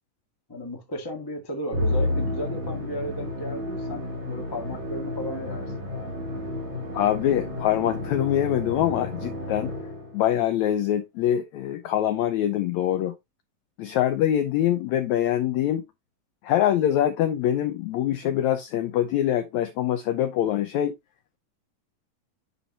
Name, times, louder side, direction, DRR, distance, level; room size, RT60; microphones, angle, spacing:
voice 1, 0.5-6.2, equal, 30° left, 0.4 m, -35 dB
Musical instrument, 1.7-10.2, left 1 dB, 35° right, 2.8 m, -31 dB
voice 2, 6.9-9.7 10.1-13.2 13.8-15.9 16.4-20.9, left 11 dB, 85° left, 1.6 m, -24 dB
10.0 x 4.4 x 2.8 m
omnidirectional pair, 4.0 m